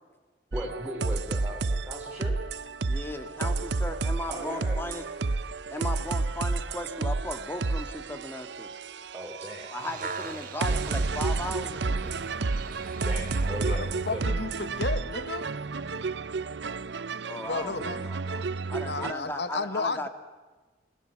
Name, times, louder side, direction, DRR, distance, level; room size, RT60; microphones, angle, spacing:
voice 1, 0.5-2.3 4.3-4.8 9.1-9.7 13.0-14.2, equal, 10° right, 2.9 m, -38 dB
sound 1, 0.5-19.1, right 3 dB, 70° right, 0.7 m, -31 dB
voice 2, 2.9-5.0 5.7-8.7 9.7-12.2 17.3-20.1, left 1 dB, 10° left, 2.1 m, -37 dB
sound 2, 9.5-13.6 14.3-14.4, right 4 dB, 45° right, 1.6 m, -42 dB
voice 3, 13.7-15.5 17.4-18.0 18.8-20.1, left 3 dB, 65° left, 1.1 m, -33 dB
29.0 x 19.5 x 7.2 m
head